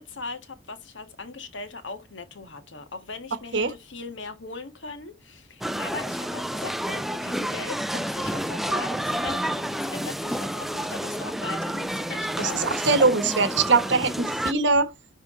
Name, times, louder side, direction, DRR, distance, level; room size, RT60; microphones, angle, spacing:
voice 1, 0.0-12.9, left 4 dB, 85° left, 1.5 m, -39 dB
sound 1, 5.6-14.5, equal, ahead, 0.3 m, -29 dB
voice 2, 12.4-14.9, right 4 dB, 70° right, 1.2 m, -22 dB
10.5 x 3.6 x 3.7 m
head